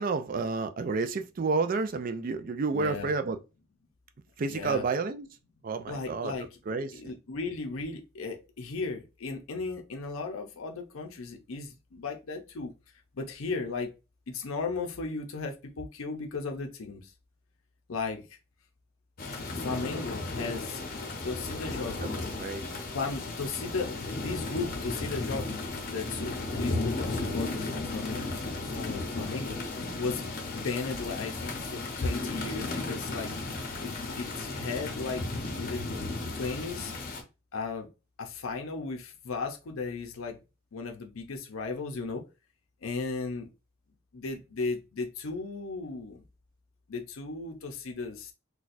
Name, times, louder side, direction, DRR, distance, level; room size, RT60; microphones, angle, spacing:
voice 1, 0.0-3.4 4.4-5.3 5.6-6.3 6.7-7.1 22.0-22.1 22.4-23.0, right 4 dB, 40° right, 0.3 m, -30 dB
voice 2, 2.7-3.1 4.5-4.8 5.9-12.7 13.1-13.9 14.3-17.1 17.9-18.4 19.5-20.8 21.2-22.1 22.9-29.6 30.0-33.3 33.8-33.9 34.2-35.8 36.3-36.9 37.5-37.9 38.2-40.4 40.7-42.2 42.8-43.5 44.1-46.2 46.9-48.3, left 4 dB, 80° left, 0.6 m, -36 dB
sound 1, 19.2-37.2, left 2 dB, 45° left, 0.7 m, -35 dB
4.1 x 2.3 x 2.5 m
head